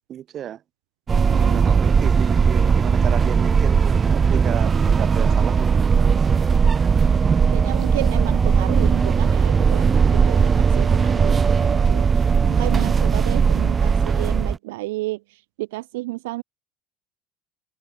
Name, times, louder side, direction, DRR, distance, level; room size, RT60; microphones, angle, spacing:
voice 1, 0.1-0.6 1.4-6.2, right 10 dB, 45° right, 1.8 m, -33 dB
sound 1, 1.1-14.6, right 6 dB, 25° right, 0.4 m, -18 dB
voice 2, 1.1-1.6 7.5-12.1 12.4-16.4, right 20 dB, 90° right, 0.5 m, -32 dB
supercardioid pair, 105°, 0 cm